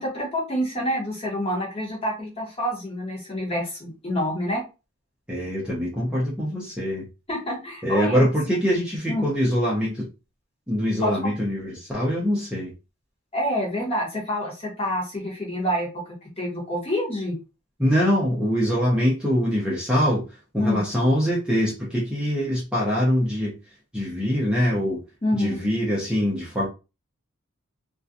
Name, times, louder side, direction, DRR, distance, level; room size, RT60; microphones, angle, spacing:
voice 1, 0.0-4.6 7.3-8.3 9.1-9.2 11.0-11.3 13.3-15.9 16.4-17.4 20.6-20.8 25.2-25.6, left 1 dB, 25° left, 0.9 m, -27 dB
voice 2, 5.3-7.1 7.8-10.1 10.7-12.7 17.8-23.6 23.9-25.0 25.3-26.7, equal, 5° right, 0.5 m, -23 dB
2.4 x 2.2 x 2.5 m
head